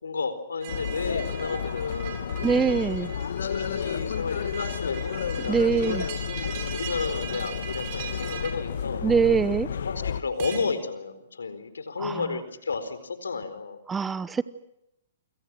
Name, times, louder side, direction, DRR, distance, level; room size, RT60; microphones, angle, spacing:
voice 1, 0.0-3.1 3.4-6.0 6.4-9.0 9.7-13.8, left 4 dB, 90° left, 12 dB, 4.3 m, -32 dB
sound 1, 0.6-10.6, right 7 dB, 45° right, 8.0 m, -40 dB
sound 2, 0.7-10.2, left 8 dB, 70° left, 1.5 m, -32 dB
voice 2, 2.4-3.1 5.5-6.0 9.0-9.7 12.0-12.2 13.9-14.4, right 5 dB, 10° right, 16 dB, 1.0 m, -23 dB
29.0 x 26.5 x 6.2 m, 0.83 s
hypercardioid pair, 135°, 0 cm